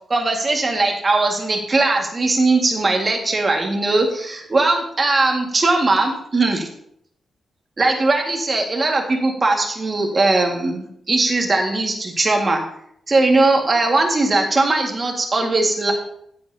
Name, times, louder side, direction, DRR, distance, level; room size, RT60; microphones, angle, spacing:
voice 1, 0.1-6.7 7.8-12.6 13.1-15.9, right 2 dB, 30° right, 2 dB, 1.8 m, -19 dB
15.5 x 7.7 x 2.8 m, 0.69 s
cardioid pair, 115°, 0 cm